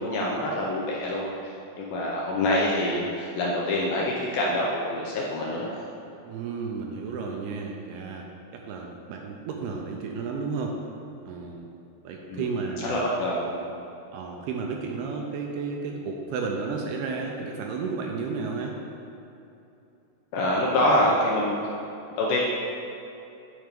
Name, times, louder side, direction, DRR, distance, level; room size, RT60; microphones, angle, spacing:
voice 1, 0.0-5.8 12.3-12.5 12.8-13.6 20.3-21.6 22.2-22.4, left 1 dB, 75° left, -3 dB, 2.2 m, -26 dB
voice 2, 6.2-8.2 8.5-10.8 11.2-11.7 12.0-13.0 14.1-18.8, right 4 dB, 80° right, 1 dB, 2.5 m, -32 dB
9.4 x 4.4 x 5.2 m, 2.9 s
omnidirectional pair, 4.9 m